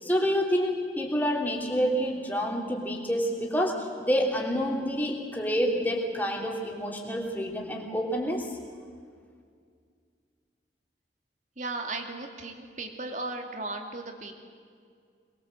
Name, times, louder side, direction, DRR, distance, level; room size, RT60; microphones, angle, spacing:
voice 1, 0.0-8.5, equal, 10° left, -1 dB, 3.1 m, -28 dB
voice 2, 11.6-14.3, right 2 dB, 45° right, 4 dB, 2.3 m, -36 dB
23.0 x 21.0 x 7.8 m, 2.1 s
head